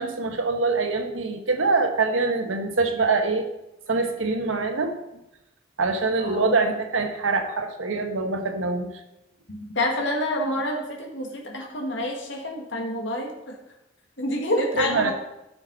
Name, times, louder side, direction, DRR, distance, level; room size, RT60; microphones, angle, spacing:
voice 1, 0.0-3.5 3.9-4.9 5.8-8.9 14.8-15.1, right 3 dB, 80° right, 5 dB, 1.2 m, -24 dB
voice 2, 9.5-13.6 14.2-15.1, left 1 dB, 65° left, 1 dB, 2.0 m, -28 dB
14.5 x 6.1 x 4.1 m, 0.90 s
head